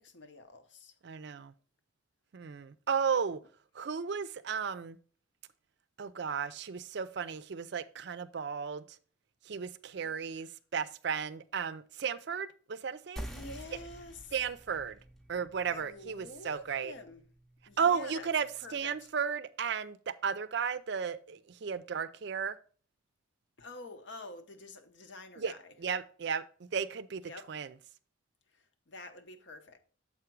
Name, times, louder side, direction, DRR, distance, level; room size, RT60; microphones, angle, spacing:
voice 1, 0.0-1.0 10.0-10.1 10.4-10.5 13.2-14.3 15.6-17.3 17.7-18.3 18.6-19.1 23.6-25.7 27.2-27.5 28.5-29.8, left 2 dB, 65° left, 0.9 m, -48 dB
voice 2, 1.0-1.5 2.3-3.4 3.7-5.0 6.0-9.0 9.4-13.3 14.3-15.0 15.3-16.9 17.8-22.6 25.4-25.5 25.8-27.2 27.5-27.7, right 6 dB, 55° right, 0.4 m, -34 dB
sound 1, 13.2-18.3, equal, ahead, 0.6 m, -48 dB
7.3 x 4.9 x 4.5 m
head